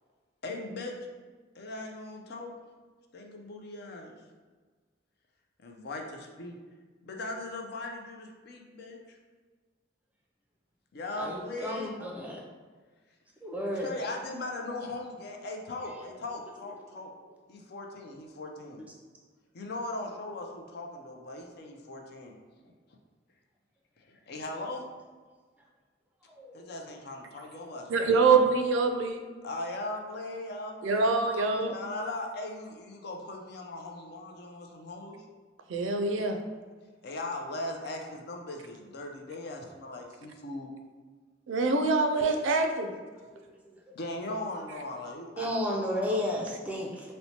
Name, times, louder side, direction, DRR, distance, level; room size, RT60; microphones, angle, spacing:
voice 1, 0.4-1.0 1.5-2.5 3.1-4.1 5.6-6.6 7.0-9.2 10.9-11.9 13.7-17.1 17.5-18.8 19.5-22.3 22.6-22.7 24.0-24.8 26.5-28.2 29.4-31.1 31.7-35.2 37.0-40.7 43.9-46.2, left 2 dB, 55° left, 2 dB, 0.4 m, -39 dB
voice 2, 11.2-12.4 13.4-13.9 26.4-26.6 31.3-31.4 43.7-43.8 45.4-47.1, left 1 dB, 10° right, -2 dB, 0.4 m, -32 dB
voice 3, 27.9-29.2 30.8-31.7 35.7-36.4 41.5-42.9, right 4 dB, 85° right, 5 dB, 0.4 m, -25 dB
4.3 x 2.1 x 2.8 m, 1.4 s
head